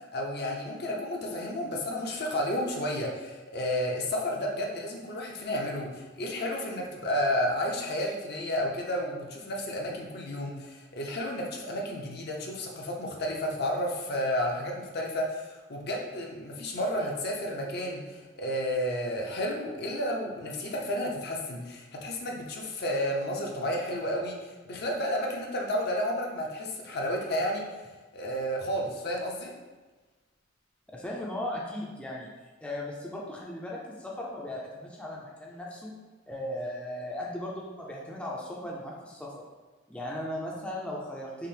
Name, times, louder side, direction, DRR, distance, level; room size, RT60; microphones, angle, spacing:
voice 1, 0.1-27.7 28.1-29.5, equal, 60° left, 0 dB, 0.6 m, -31 dB
voice 2, 30.9-32.3 32.6-36.0 36.3-39.4 39.9-41.5, left 1 dB, 5° left, -3 dB, 0.4 m, -37 dB
5.6 x 2.0 x 3.2 m, 1.3 s
head